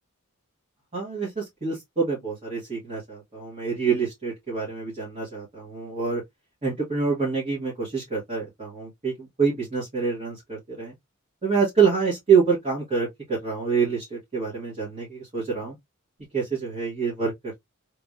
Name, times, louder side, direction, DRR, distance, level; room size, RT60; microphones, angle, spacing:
voice 1, 0.9-6.2 6.6-10.9 11.4-13.1 13.4-15.8 16.3-17.3, right 5 dB, 30° right, 1.7 m, -26 dB
3.3 x 3.3 x 2.6 m
head